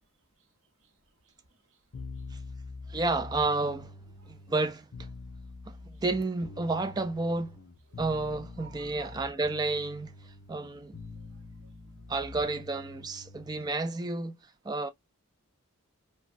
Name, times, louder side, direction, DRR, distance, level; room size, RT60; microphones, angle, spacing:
voice 1, 0.0-2.7 4.2-4.5 5.2-5.3 5.9-6.0 7.9-8.0 8.6-9.2 11.1-12.0, right 6 dB, 65° right, 0.8 m, -60 dB
sound 1, 1.9-13.8, left 3 dB, 60° left, 0.9 m, -45 dB
voice 2, 2.9-3.9 4.3-5.1 5.7-7.6 8.0-11.0 12.1-14.9, right 3 dB, 20° right, 0.3 m, -31 dB
3.1 x 2.2 x 2.5 m
head